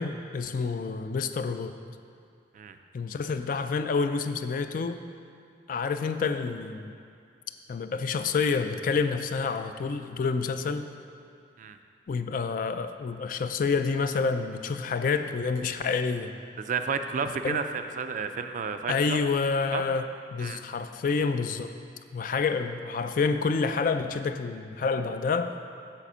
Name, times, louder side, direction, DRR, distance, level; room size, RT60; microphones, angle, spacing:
voice 1, 0.0-1.7 2.9-5.0 5.7-6.9 7.7-10.9 12.1-16.3 17.4-17.7 18.9-21.7 22.1-25.6, left 4 dB, 45° left, 9 dB, 0.3 m, -28 dB
voice 2, 16.6-19.2 19.7-19.8 20.4-20.6, right 5 dB, 40° right, 8 dB, 0.3 m, -31 dB
7.4 x 4.3 x 6.6 m, 2.4 s
head